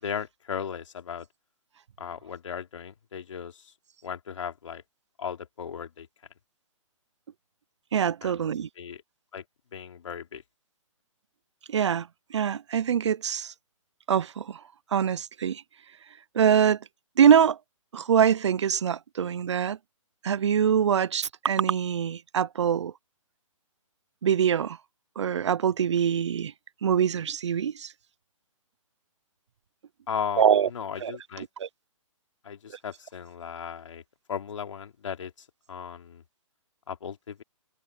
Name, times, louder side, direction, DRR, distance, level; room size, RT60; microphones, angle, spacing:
voice 1, 0.0-1.3 2.0-3.7 4.0-4.8 5.2-6.1 8.2-9.0 9.3-9.4 9.7-10.4 30.1-31.5 32.4-34.0 34.3-36.2 36.9-37.4, left 7 dB, 65° left, 3.1 m, -36 dB
voice 2, 7.9-8.7 11.7-13.5 14.1-14.6 14.9-15.6 16.3-16.8 17.2-17.6 17.9-19.8 20.2-22.9 24.2-24.8 25.2-26.5 26.8-27.9 30.4-30.7 31.0-31.1 31.4-31.7, right 8 dB, 55° right, 0.5 m, -24 dB
hypercardioid pair, 175°, 18 cm